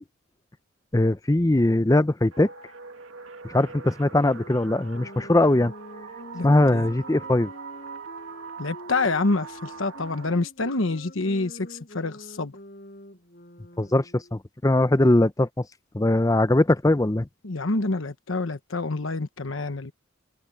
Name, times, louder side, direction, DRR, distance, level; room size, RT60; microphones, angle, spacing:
voice 1, 0.9-2.5 3.4-5.7 6.4-7.5 13.8-15.6 15.9-17.3, left 1 dB, 15° left, 0.6 m, -21 dB
sound 1, 2.3-10.4, right 5 dB, 70° right, 2.1 m, -42 dB
sound 2, 4.3-14.4, left 1 dB, 45° left, 7.6 m, -46 dB
voice 2, 6.3-6.8 8.6-12.5 17.4-19.9, left 3 dB, 70° left, 1.1 m, -27 dB
open air
head